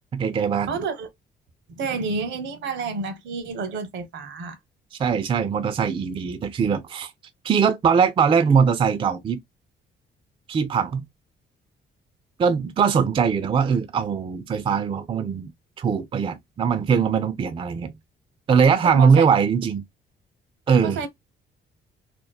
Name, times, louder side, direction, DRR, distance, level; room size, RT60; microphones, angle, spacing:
voice 1, 0.1-0.8 5.0-7.1 7.4-9.4 10.5-11.0 12.4-15.5 15.8-17.9 18.5-19.8 20.7-21.0, right 6 dB, 25° right, 0.3 m, -21 dB
voice 2, 0.7-1.1 1.8-4.6 18.8-19.3 20.8-21.1, right 4 dB, 75° right, 0.8 m, -29 dB
2.8 x 2.0 x 2.3 m
cardioid pair, 90°, 20 cm